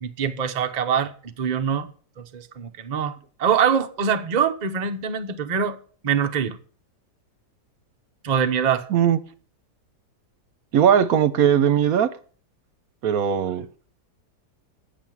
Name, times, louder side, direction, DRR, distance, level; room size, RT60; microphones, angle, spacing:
voice 1, 0.0-1.1 1.4-1.9 2.3-5.8 6.0-6.6 8.2-8.9, right 7 dB, 50° right, 0.5 m, -24 dB
voice 2, 10.7-12.1 13.0-13.7, right 9 dB, 65° right, 1.1 m, -19 dB
9.4 x 6.9 x 7.3 m
omnidirectional pair, 1.8 m